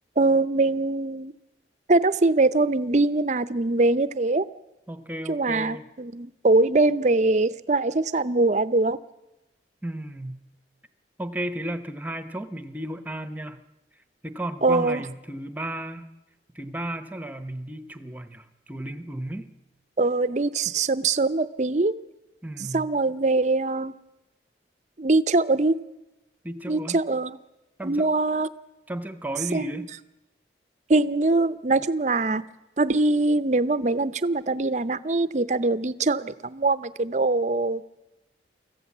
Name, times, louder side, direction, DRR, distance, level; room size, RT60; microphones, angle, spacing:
voice 1, 0.2-1.3 1.9-4.5 5.3-9.0 14.6-15.0 20.0-21.9 22.7-23.9 25.0-25.8 26.7-27.3 27.8-28.5 29.5-29.8 30.9-32.4 32.8-37.8, right 2 dB, 40° right, 14 dB, 0.7 m, -22 dB
voice 2, 4.9-5.8 9.8-10.4 11.2-13.6 14.2-16.0 16.5-19.5 22.4-22.9 26.4-27.0 27.8-28.1 28.9-29.9, right 1 dB, 10° right, 11 dB, 0.9 m, -34 dB
25.0 x 15.0 x 7.3 m, 0.99 s
head